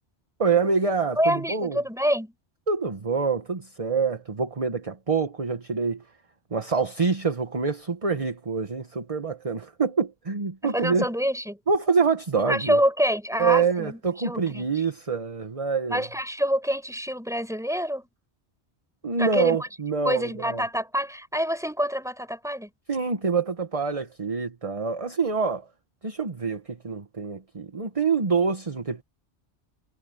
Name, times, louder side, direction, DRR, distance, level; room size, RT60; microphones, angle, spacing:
voice 1, 0.4-1.8 2.7-6.0 6.5-11.1 11.7-12.8 13.4-16.0 19.0-20.6 22.9-25.7 26.0-29.0, right 5 dB, 30° right, 1.2 m, -26 dB
voice 2, 1.2-2.3 10.7-11.6 12.5-14.7 15.9-18.1 19.2-19.6 20.0-22.7, equal, 5° right, 4.7 m, -26 dB
omnidirectional pair, 1.1 m